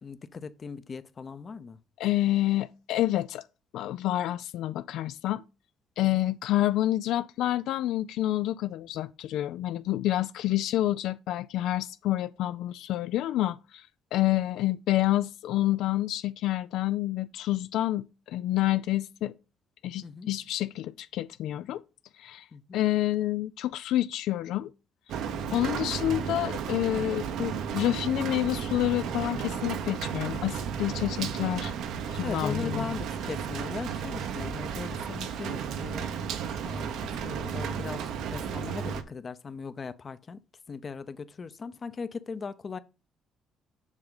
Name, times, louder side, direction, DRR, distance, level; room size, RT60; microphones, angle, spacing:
voice 1, 0.0-1.8 6.0-6.2 20.0-20.3 22.5-22.8 25.3-25.6 32.2-36.2 36.5-36.9 37.2-40.4 40.7-42.8, left 5 dB, 35° left, 0.7 m, -39 dB
voice 2, 2.0-3.4 3.7-5.4 6.0-19.3 19.8-21.8 22.2-22.5 22.7-24.7 25.5-31.7 32.1-32.9, left 14 dB, 80° left, 0.4 m, -28 dB
Rain, 25.1-39.0, right 7 dB, 80° right, 1.1 m, -33 dB
7.3 x 6.3 x 4.0 m
cardioid pair, 105°, 0 cm